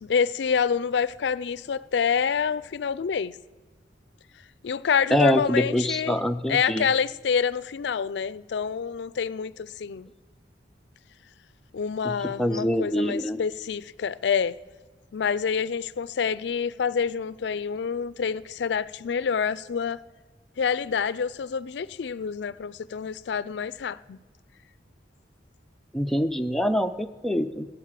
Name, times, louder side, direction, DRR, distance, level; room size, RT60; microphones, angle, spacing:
voice 1, 0.0-3.3 4.6-6.2 6.5-10.1 11.7-14.6 15.1-20.0 20.6-24.2, left 6 dB, 65° left, 0.4 m, -27 dB
voice 2, 5.1-6.9 12.0-13.4 25.9-27.7, equal, ahead, 0.5 m, -25 dB
15.0 x 8.7 x 7.5 m
head